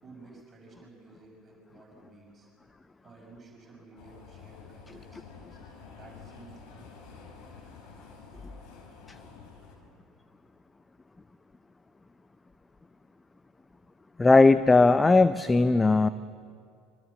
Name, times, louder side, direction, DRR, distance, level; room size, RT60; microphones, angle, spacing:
voice 1, 0.0-2.5 3.0-6.9, right 3 dB, 30° right, -1 dB, 6.5 m, -53 dB
sound 1, 4.0-9.8, left 5 dB, 50° left, 4.8 m, -49 dB
voice 2, 14.2-16.1, left 3 dB, 15° left, 14 dB, 0.6 m, -18 dB
25.5 x 23.5 x 6.9 m, 2.3 s
figure-of-eight pair, 65°, 0 cm